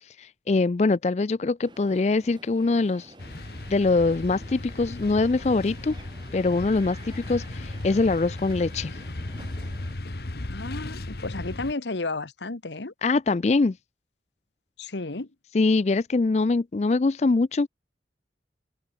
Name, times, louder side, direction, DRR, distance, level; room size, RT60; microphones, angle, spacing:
voice 1, 0.0-3.1 3.7-5.9 6.3-9.0 13.0-13.8 15.5-17.7, left 3 dB, 40° left, 0.4 m, -23 dB
Crowd, 1.6-9.9, right 1 dB, 25° right, 2.3 m, -50 dB
sound 1, 3.2-11.7, left 2 dB, 60° left, 1.3 m, -36 dB
voice 2, 10.5-12.9 14.8-15.3, left 3 dB, 85° left, 1.3 m, -32 dB
open air
head